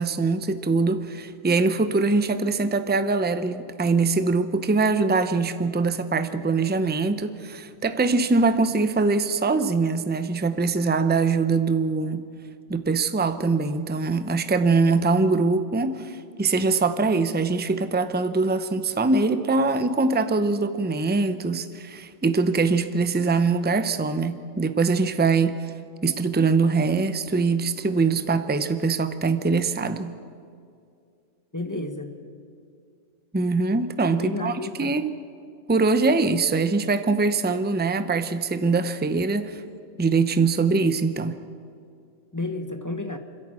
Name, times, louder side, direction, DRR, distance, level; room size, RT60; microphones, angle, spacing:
voice 1, 0.0-12.3 12.7-25.7 26.0-30.1 33.3-35.1 35.7-39.6 40.0-41.4, right 4 dB, 10° right, 11 dB, 0.6 m, -23 dB
voice 2, 31.5-32.2 34.1-35.0 42.3-43.2, left 2 dB, 15° left, 6 dB, 1.2 m, -31 dB
29.0 x 11.0 x 8.9 m, 2.3 s
omnidirectional pair, 1.3 m